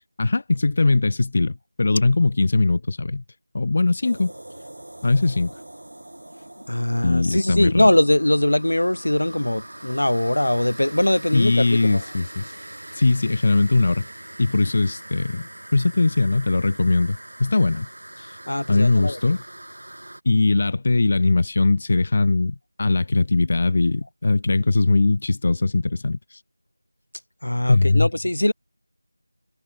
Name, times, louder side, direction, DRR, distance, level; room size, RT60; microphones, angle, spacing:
voice 1, 0.2-3.2 3.5-4.3 5.0-5.5 7.0-7.9 11.3-12.5 12.9-14.1 14.4-17.9 18.2-18.4 18.7-19.4 20.2-26.4 27.7-28.1, left 3 dB, 25° left, 0.4 m, -20 dB
sound 1, 4.0-20.2, right 1 dB, 70° right, 6.7 m, -42 dB
voice 2, 6.7-12.0 18.5-19.3 27.4-28.5, left 1 dB, 90° left, 1.2 m, -21 dB
figure-of-eight pair, 180°, 0 cm